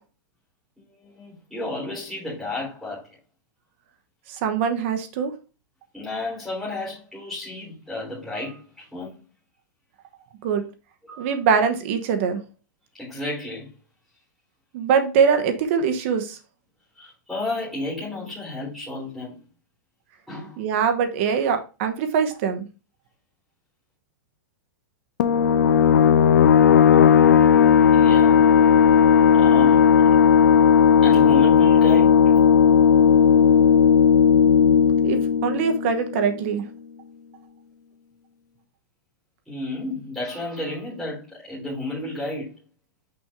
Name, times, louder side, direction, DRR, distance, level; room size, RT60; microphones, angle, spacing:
voice 1, 1.0-3.1 5.9-9.1 11.0-11.4 12.9-13.7 17.0-19.4 20.3-20.6 27.9-28.5 29.3-30.1 31.0-32.2 39.5-42.5, left 2 dB, ahead, 3.8 m, -32 dB
voice 2, 4.4-5.3 10.4-10.6 11.2-12.4 14.7-16.4 20.6-22.6 35.0-36.6, right 6 dB, 40° right, 1.0 m, -22 dB
sound 1, 25.2-36.5, left 7 dB, 70° left, 0.7 m, -15 dB
6.0 x 5.2 x 3.5 m
supercardioid pair, 170°, 10 cm